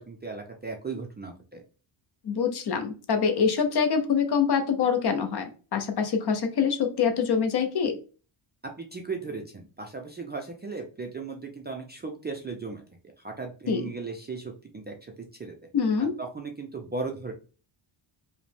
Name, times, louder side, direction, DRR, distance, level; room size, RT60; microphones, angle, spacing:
voice 1, 0.0-1.6 8.8-12.8 13.2-15.1 15.4-15.6 16.0-17.3, right 4 dB, 25° right, 2 dB, 0.3 m, -36 dB
voice 2, 2.2-8.0 13.7-13.8 15.7-16.1, left 6 dB, 50° left, 7 dB, 0.7 m, -25 dB
4.9 x 2.1 x 3.4 m, 0.36 s
wide cardioid pair, 165°, 50 cm